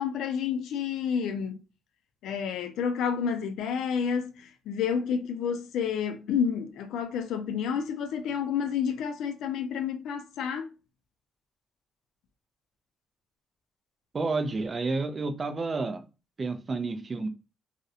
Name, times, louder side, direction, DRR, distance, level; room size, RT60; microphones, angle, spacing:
voice 1, 0.0-1.6 2.2-10.7, left 7 dB, 80° left, 0.4 m, -30 dB
voice 2, 14.1-16.0 16.4-17.3, right 3 dB, 35° right, 0.4 m, -30 dB
2.4 x 2.1 x 2.6 m
cardioid pair, 90°, 0 cm